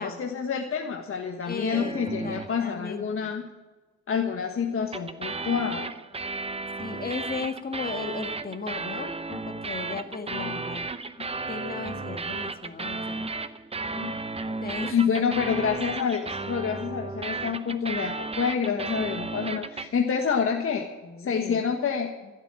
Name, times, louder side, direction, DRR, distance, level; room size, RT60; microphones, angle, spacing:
voice 1, 0.0-3.4 4.1-5.9 9.3-9.4 10.3-10.6 11.2-11.3 13.9-14.1 14.5-14.6 14.8-20.9 21.2-22.3, left 6 dB, 45° left, 3 dB, 1.5 m, -28 dB
voice 2, 1.5-3.3 6.8-9.2 9.5-10.8 11.5-13.3 14.6-14.9 21.0-21.6, left 4 dB, 30° left, 7 dB, 1.8 m, -36 dB
sound 1, 1.7-2.6 4.9-19.9, right 3 dB, 20° right, 0.8 m, -34 dB
15.0 x 8.4 x 8.9 m, 1.2 s
cardioid pair, 90°, 30 cm